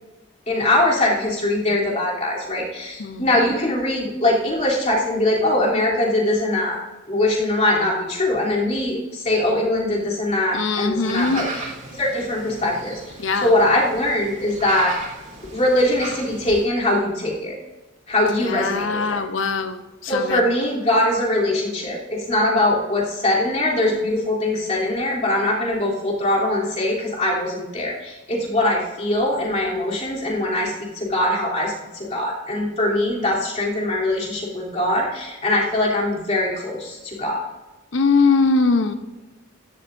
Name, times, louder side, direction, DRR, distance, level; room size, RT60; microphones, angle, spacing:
voice 1, 0.5-6.8 7.1-11.5 11.9-14.9 15.5-17.6 18.1-19.2 20.1-37.4, left 1 dB, 35° left, -5 dB, 3.4 m, -22 dB
voice 2, 3.0-3.5 10.5-11.5 13.2-13.5 18.4-20.4 37.9-38.9, left 4 dB, 75° left, 9 dB, 0.9 m, -21 dB
sound 1, 11.1-16.6, right 3 dB, 45° right, 3.1 m, -36 dB
16.0 x 12.0 x 2.7 m, 1.1 s
head